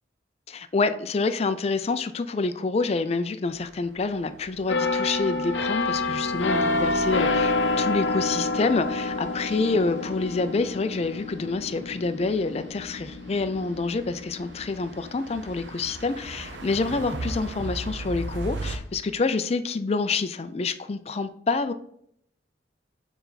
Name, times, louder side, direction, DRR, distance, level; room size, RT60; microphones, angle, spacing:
voice 1, 0.5-21.7, left 3 dB, 35° left, 0.4 m, -27 dB
sound 1, 3.5-18.8, right 2 dB, 90° right, 0.8 m, -40 dB
sound 2, 4.7-16.2 16.7-16.9, left 3 dB, 75° left, 0.6 m, -28 dB
7.0 x 3.3 x 4.0 m
head